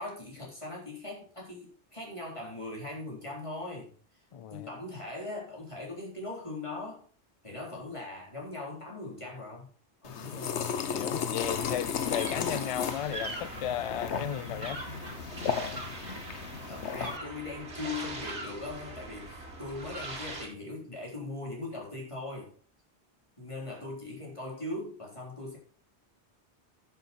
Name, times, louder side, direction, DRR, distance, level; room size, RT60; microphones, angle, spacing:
voice 1, 0.0-3.9 4.5-7.1 7.4-9.7 10.0-10.7 16.7-22.5 23.4-25.6, left 2 dB, 25° left, 4.0 m, -40 dB
voice 2, 4.3-4.7 10.9-14.8, left 10 dB, 60° left, 0.3 m, -35 dB
sound 1, 10.0-17.2, left 7 dB, 80° left, 1.2 m, -34 dB
sound 2, 11.4-20.5, right 2 dB, 85° right, 2.6 m, -41 dB
10.5 x 7.1 x 4.4 m
omnidirectional pair, 1.1 m